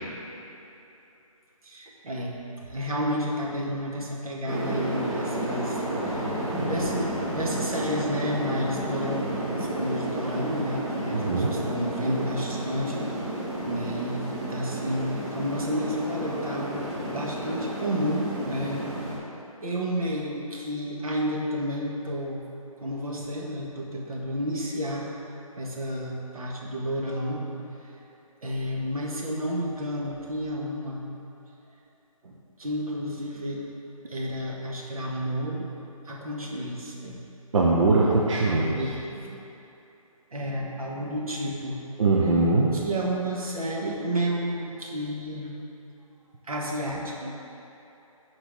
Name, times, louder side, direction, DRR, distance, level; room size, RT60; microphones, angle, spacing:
voice 1, 1.6-2.4 2.7-9.2 9.5-13.1 13.7-18.9 19.6-22.4 22.8-25.1 25.6-27.4 28.4-31.1 32.2-33.6 34.1-35.7 36.1-37.2 38.0-39.4 40.3-41.8 42.7-45.5 46.5-47.3, equal, 75° right, -2 dB, 1.8 m, -31 dB
sound 1, 4.5-19.2, right 1 dB, 15° right, 1.5 m, -31 dB
voice 2, 11.1-11.5 37.5-38.8 42.0-42.8, right 3 dB, 60° right, -4 dB, 0.9 m, -21 dB
13.0 x 4.6 x 3.8 m, 2.9 s
figure-of-eight pair, 160°, 18 cm